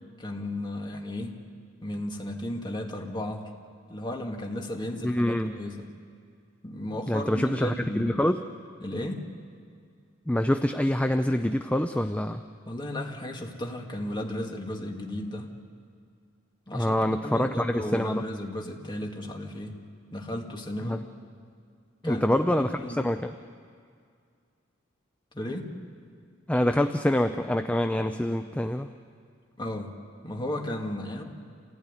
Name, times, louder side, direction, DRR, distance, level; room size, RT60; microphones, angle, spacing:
voice 1, 0.2-1.4 1.8-3.5 3.9-5.9 6.6-8.2 8.8-9.2 12.7-15.5 16.7-19.7 20.1-21.0 22.0-22.2 22.6-23.0 25.3-25.7 29.6-29.9 30.2-31.2, left 1 dB, 25° left, 1 dB, 2.4 m, -34 dB
voice 2, 5.0-5.5 7.1-8.4 10.3-12.4 16.7-18.2 20.8-21.0 22.0-23.3 26.5-28.9, left 1 dB, 5° left, 7 dB, 0.5 m, -26 dB
27.5 x 16.5 x 9.8 m, 2.2 s
head